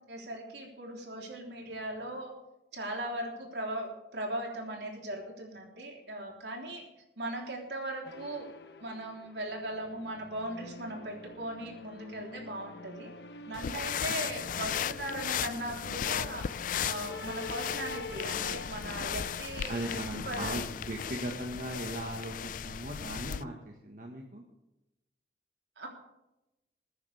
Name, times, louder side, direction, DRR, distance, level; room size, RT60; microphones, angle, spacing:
voice 1, 0.1-2.3 2.7-6.8 7.2-8.5 8.8-13.1 13.4-16.5 16.8-20.0 20.3-20.6 25.8-25.9, right 1 dB, 75° right, 0 dB, 3.5 m, -38 dB
sound 1, 8.0-21.5, left 2 dB, 70° left, 1.0 m, -46 dB
sound 2, 13.5-23.4, left 9 dB, 50° left, 0.3 m, -36 dB
voice 2, 19.7-24.4, right 1 dB, 50° right, 1 dB, 1.6 m, -38 dB
21.5 x 9.9 x 3.5 m, 0.94 s
head